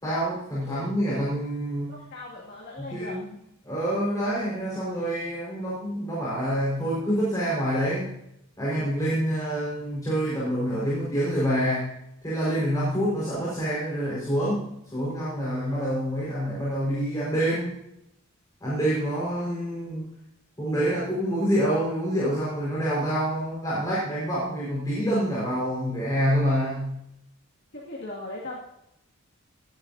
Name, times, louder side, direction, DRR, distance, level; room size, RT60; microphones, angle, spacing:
voice 1, 0.0-2.0 2.8-3.2 3.6-8.1 8.6-11.9 12.2-17.7 18.6-20.1 20.6-26.9, equal, 15° left, -8 dB, 4.8 m, -27 dB
voice 2, 1.9-3.2 10.7-11.0 15.5-15.7 27.7-28.6, left 2 dB, 50° left, -4 dB, 2.3 m, -39 dB
18.5 x 10.5 x 2.8 m, 0.81 s
head